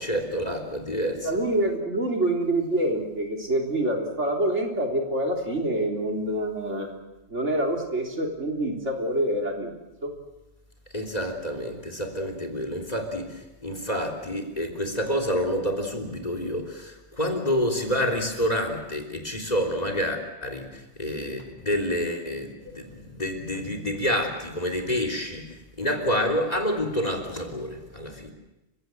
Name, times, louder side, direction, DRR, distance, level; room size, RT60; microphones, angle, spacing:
voice 1, 0.0-1.3 10.9-28.3, equal, 35° left, 5 dB, 3.5 m, -28 dB
voice 2, 1.2-6.9 7.3-9.7 10.0-10.1, right 1 dB, 85° right, 1 dB, 3.9 m, -26 dB
29.5 x 16.5 x 7.9 m, 1.0 s
omnidirectional pair, 1.2 m